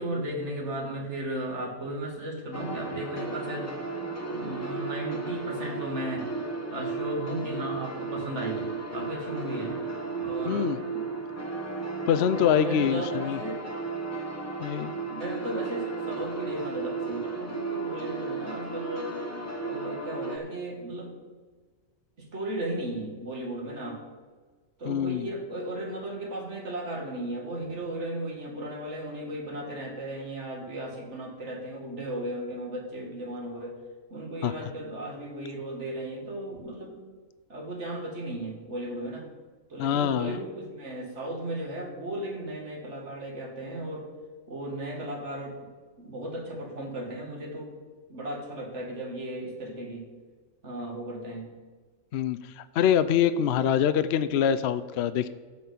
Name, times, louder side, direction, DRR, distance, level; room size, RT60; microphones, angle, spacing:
voice 1, 0.0-3.7 4.3-6.4 6.7-9.8 10.2-11.1 12.2-13.6 14.8-19.1 19.7-21.1 22.2-24.0 24.8-33.8 34.1-37.0 37.5-39.3 39.7-44.1 44.5-45.7 46.0-47.7 48.1-50.1 50.6-51.5 53.4-53.6, right 1 dB, 60° right, 1 dB, 2.2 m, -35 dB
sound 1, 2.5-20.4, right 3 dB, 15° left, 1.1 m, -34 dB
voice 2, 10.5-10.8 12.1-13.4 14.6-15.0 24.8-25.3 34.4-34.5 39.8-40.4 52.1-55.3, left 9 dB, 65° left, 13 dB, 0.7 m, -25 dB
13.0 x 4.3 x 8.4 m, 1.4 s
omnidirectional pair, 1.4 m